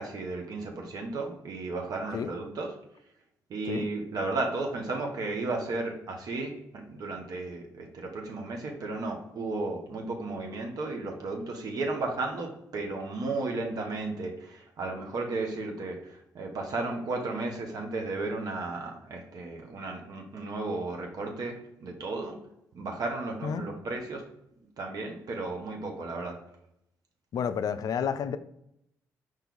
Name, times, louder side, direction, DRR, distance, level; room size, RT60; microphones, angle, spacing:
voice 1, 0.0-2.7 3.5-22.4 22.7-24.2 24.8-26.4, right 3 dB, 60° right, 2 dB, 0.9 m, -34 dB
voice 2, 27.3-28.4, left 7 dB, 55° left, 12 dB, 0.4 m, -30 dB
4.5 x 3.2 x 3.8 m, 0.78 s
hypercardioid pair, 50°, 7 cm